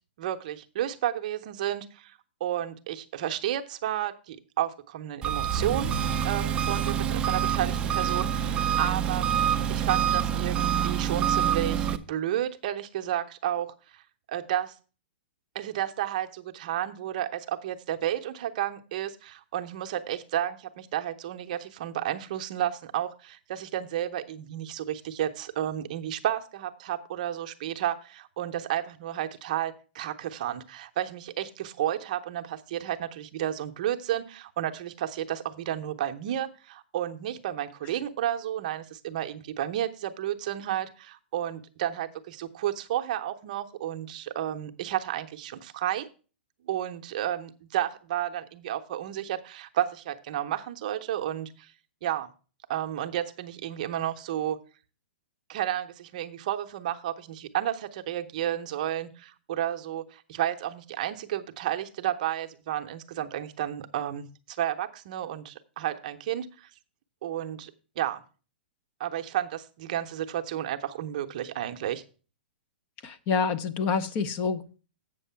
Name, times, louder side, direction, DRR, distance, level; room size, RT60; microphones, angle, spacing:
voice 1, 0.2-5.9 6.2-9.2 9.7-14.0 14.3-14.8 15.5-46.1 46.6-51.7 52.0-52.3 52.7-54.6 55.5-66.7 67.2-67.7 68.0-68.2 69.0-72.0, right 11 dB, 45° right, 7 dB, 0.7 m, -32 dB
Engine, 5.2-12.0, right 8 dB, 15° right, 0.5 m, -26 dB
voice 2, 73.0-74.8, left 5 dB, 25° left, 11 dB, 0.7 m, -27 dB
8.3 x 6.3 x 5.6 m, 0.36 s
hypercardioid pair, 160°, 6 cm